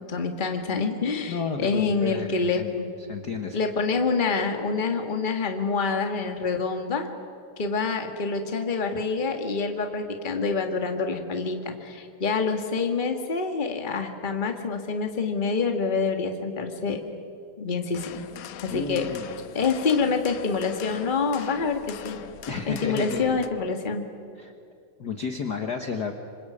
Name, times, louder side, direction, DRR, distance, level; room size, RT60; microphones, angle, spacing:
voice 1, 0.0-2.9 3.5-7.1 7.6-17.0 17.6-18.1 18.6-19.1 19.5-22.2 22.7-24.0, left 4 dB, 20° left, 4 dB, 1.3 m, -26 dB
voice 2, 1.3-2.7 3.1-3.6 18.7-19.3 22.5-23.4 24.4-24.5 25.0-26.1, left 5 dB, 50° left, 5 dB, 1.2 m, -31 dB
sound 1, 17.9-23.5, left 10 dB, 70° left, 2.0 m, -42 dB
26.5 x 25.5 x 8.7 m, 2.5 s
omnidirectional pair, 3.7 m